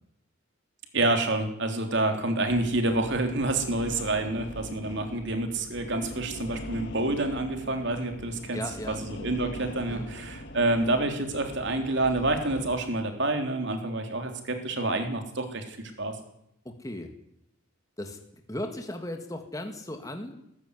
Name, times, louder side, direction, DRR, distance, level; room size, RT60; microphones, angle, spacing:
voice 1, 0.9-8.6 8.9-16.2, right 2 dB, 55° right, 5 dB, 3.5 m, -28 dB
sound 1, 2.5-12.8, left 1 dB, 55° left, 1.9 m, -42 dB
voice 2, 8.5-9.1 9.9-10.2 16.7-17.1 18.0-20.3, left 1 dB, 15° left, 5 dB, 1.9 m, -37 dB
19.0 x 15.0 x 9.7 m, 0.77 s
head